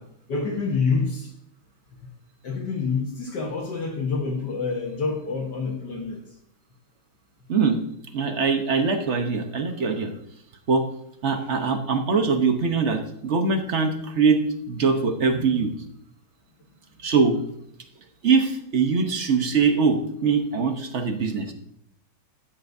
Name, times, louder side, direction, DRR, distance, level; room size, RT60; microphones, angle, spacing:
voice 1, 0.3-1.3 2.4-6.2, left 4 dB, 55° left, 1.6 m, -27 dB
voice 2, 7.5-7.8 8.1-10.1 10.7-10.8 11.2-15.8 17.0-17.4 18.2-21.5, right 5 dB, 55° right, 0.8 m, -22 dB
12.5 x 9.4 x 2.6 m
omnidirectional pair, 2.4 m